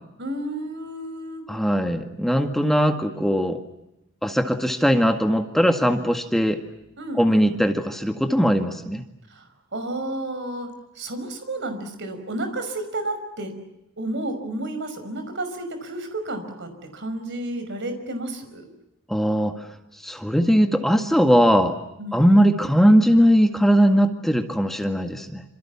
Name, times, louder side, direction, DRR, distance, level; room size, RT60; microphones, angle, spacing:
voice 1, 0.2-1.4 7.0-7.6 9.3-9.4 9.7-13.5 14.0-18.7 22.0-22.2, right 1 dB, 60° right, 7 dB, 5.6 m, -31 dB
voice 2, 1.5-3.6 4.2-6.6 7.1-9.0 19.1-19.6 20.0-21.8 22.1-25.4, equal, ahead, 5 dB, 1.9 m, -19 dB
27.5 x 27.0 x 7.3 m, 0.88 s
head